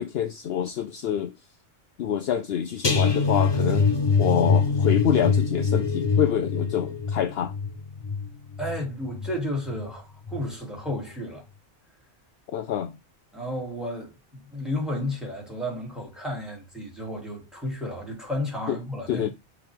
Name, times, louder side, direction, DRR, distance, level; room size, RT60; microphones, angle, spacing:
voice 1, 0.0-1.4 2.0-3.9 4.2-7.5 12.5-13.0 18.7-18.8 19.1-19.3, left 9 dB, 65° left, 0.8 m, -26 dB
sound 1, 2.8-9.9 10.3-10.6 10.9-11.0, left 5 dB, 25° left, 0.9 m, -24 dB
voice 2, 8.6-11.4 13.3-19.3, left 1 dB, ahead, 2.7 m, -32 dB
6.2 x 4.7 x 3.5 m
omnidirectional pair, 1.2 m